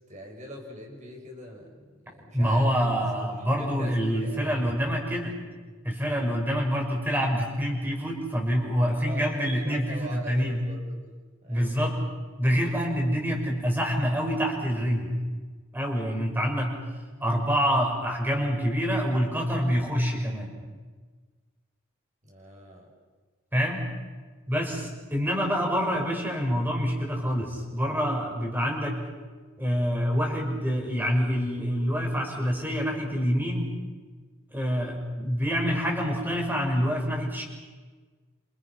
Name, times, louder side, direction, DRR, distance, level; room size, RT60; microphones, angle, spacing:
voice 1, 0.1-2.7 3.0-4.6 8.9-11.0 11.4-12.0 22.2-22.9, right 1 dB, 35° right, 0 dB, 6.6 m, -43 dB
voice 2, 2.3-5.3 5.8-10.6 11.5-12.0 12.4-15.2 15.7-16.7 17.2-20.5 23.5-23.8 24.5-29.0 29.6-33.7 34.5-37.4, equal, 10° right, 0 dB, 5.8 m, -26 dB
28.5 x 27.5 x 6.0 m, 1.4 s
head